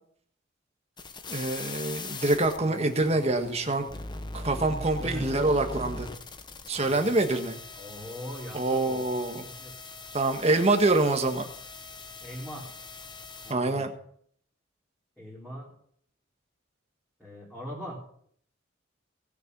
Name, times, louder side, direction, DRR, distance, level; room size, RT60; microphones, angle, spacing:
sound 1, 1.0-13.5, left 3 dB, 20° left, 0.9 m, -41 dB
voice 1, 1.3-3.8 4.3-6.1 6.7-7.6 8.5-9.5 10.1-11.5 13.5-13.9, right 2 dB, 30° right, 5 dB, 1.5 m, -25 dB
voice 2, 4.5-5.5 6.7-7.3 7.8-9.7 12.2-12.7 13.4-13.9 15.2-15.7 17.2-18.0, equal, ahead, -8 dB, 3.8 m, -41 dB
18.5 x 6.9 x 6.2 m, 0.64 s
head